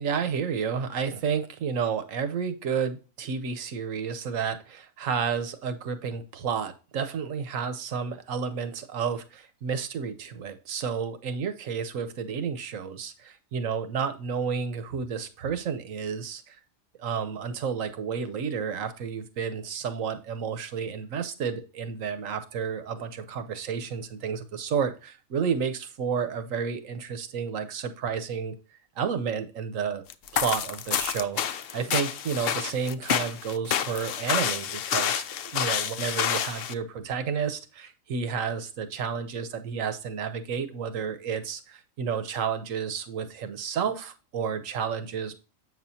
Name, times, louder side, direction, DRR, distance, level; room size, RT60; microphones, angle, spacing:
voice 1, 0.0-16.6 17.0-28.5 29.0-30.0 30.3-31.4 31.7-35.2 35.5-45.3, right 6 dB, 70° right, 10 dB, 1.2 m, -31 dB
sound 1, 30.1-36.7, left 9 dB, 60° left, 0.6 m, -29 dB
8.1 x 6.3 x 2.7 m, 0.34 s
omnidirectional pair, 1.4 m